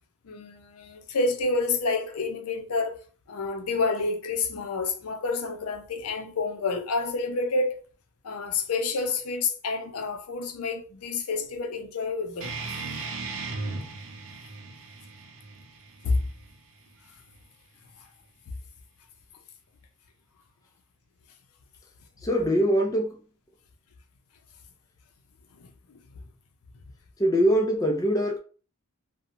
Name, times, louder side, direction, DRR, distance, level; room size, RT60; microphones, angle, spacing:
voice 1, 0.2-3.0 3.3-7.8 8.2-12.5 16.0-16.2 25.6-26.0, left 3 dB, 90° left, 0.5 m, -29 dB
sound 1, 12.4-17.5, right 3 dB, 65° right, 0.6 m, -37 dB
voice 2, 22.2-23.2 27.2-28.4, equal, 15° left, 0.4 m, -23 dB
2.6 x 2.1 x 2.8 m
head